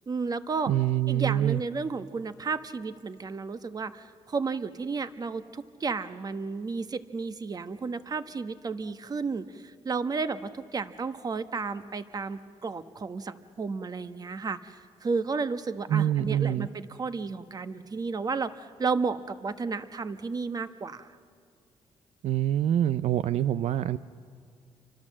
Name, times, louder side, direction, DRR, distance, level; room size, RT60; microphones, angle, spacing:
voice 1, 0.1-0.7 1.1-21.2, right 4 dB, 35° right, 11 dB, 1.2 m, -32 dB
voice 2, 0.7-1.6 15.9-16.7 22.2-24.0, right 11 dB, 75° right, 14 dB, 0.6 m, -25 dB
29.5 x 24.5 x 7.5 m, 2.3 s
cardioid pair, 100°, 11 cm